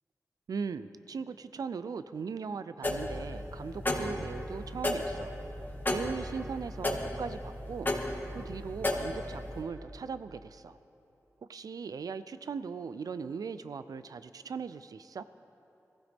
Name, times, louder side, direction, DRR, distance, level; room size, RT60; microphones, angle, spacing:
voice 1, 0.5-5.3 5.9-7.9 8.3-10.8 11.5-15.2, right 5 dB, 85° right, 13 dB, 0.4 m, -39 dB
sound 1, 2.8-9.6, left 1 dB, 30° left, 2.0 m, -34 dB
21.0 x 15.0 x 3.6 m, 2.9 s
cardioid pair, 50°, 6 cm